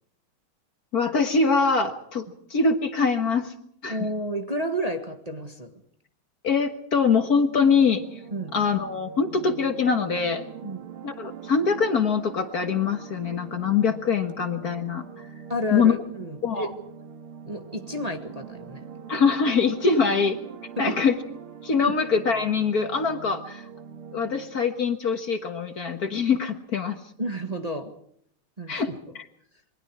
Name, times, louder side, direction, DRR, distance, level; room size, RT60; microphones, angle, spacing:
voice 1, 0.9-2.3 2.5-3.5 3.8-4.0 6.4-8.2 8.5-10.5 11.0-15.3 15.7-16.0 16.4-16.7 19.1-20.3 20.8-21.2 21.6-23.7 24.1-27.0 28.7-29.3, left 5 dB, 50° left, 6 dB, 1.8 m, -23 dB
voice 2, 3.9-5.7 8.3-8.5 10.6-10.8 15.5-16.7 17.4-18.9 20.8-21.0 21.8-21.9 27.2-27.9 28.6-29.0, right 1 dB, 20° right, 4 dB, 1.6 m, -31 dB
sound 1, 7.4-24.8, right 8 dB, 90° right, 2.4 m, -43 dB
27.5 x 23.5 x 4.8 m, 0.67 s
omnidirectional pair, 2.3 m